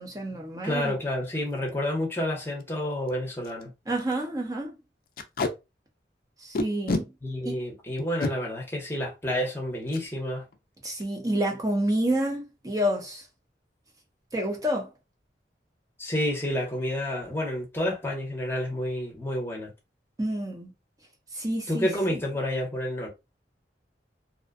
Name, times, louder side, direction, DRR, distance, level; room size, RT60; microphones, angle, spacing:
voice 1, 0.0-0.9 3.9-4.7 6.4-7.1 7.4-7.6 10.8-13.3 14.3-14.9 20.2-20.7 21.3-21.9, right 1 dB, 20° right, 0.6 m, -28 dB
voice 2, 0.6-3.7 7.2-10.4 16.0-19.7 21.7-23.1, left 1 dB, 15° left, 0.8 m, -29 dB
Packing tape duct tape, 1.5-1.7 2.1-2.2 2.5-2.6 3.1-3.2 3.4-3.6 4.0-4.1 5.2-5.5 6.5-7.0 8.0-8.3 9.9-10.1 10.4-10.6 10.8-11.3, left 2 dB, 55° left, 0.4 m, -29 dB
2.5 x 2.2 x 2.4 m
head